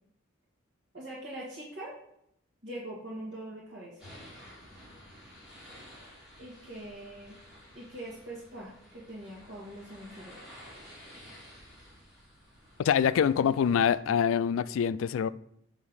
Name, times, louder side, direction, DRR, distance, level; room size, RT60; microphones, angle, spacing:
voice 1, 0.9-1.9 2.6-4.0 6.4-7.4 7.7-10.4, right 1 dB, 55° right, -7 dB, 1.8 m, -42 dB
sound 1, 4.0-14.0, equal, 5° right, 2.2 m, -52 dB
voice 2, 12.8-15.3, left 7 dB, 80° left, 17 dB, 0.3 m, -25 dB
7.4 x 3.5 x 6.3 m, 0.74 s
head